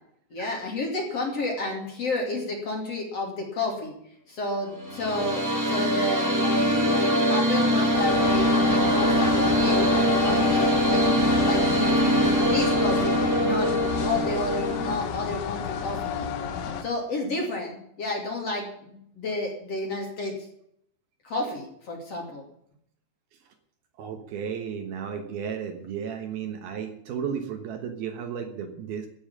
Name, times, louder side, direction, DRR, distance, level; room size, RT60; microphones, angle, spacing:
voice 1, 0.3-3.9 4.3-13.1 13.4-13.7 14.0-16.1 16.8-20.3 21.2-22.4, left 2 dB, 40° left, 0 dB, 3.2 m, -31 dB
sound 1, 4.7-15.0, equal, 10° right, 1.0 m, -23 dB
sound 2, 7.9-16.8, left 7 dB, 65° left, 2.6 m, -31 dB
voice 2, 24.0-29.1, right 7 dB, 70° right, 6 dB, 2.9 m, -34 dB
15.0 x 7.2 x 8.8 m, 0.71 s
omnidirectional pair, 5.0 m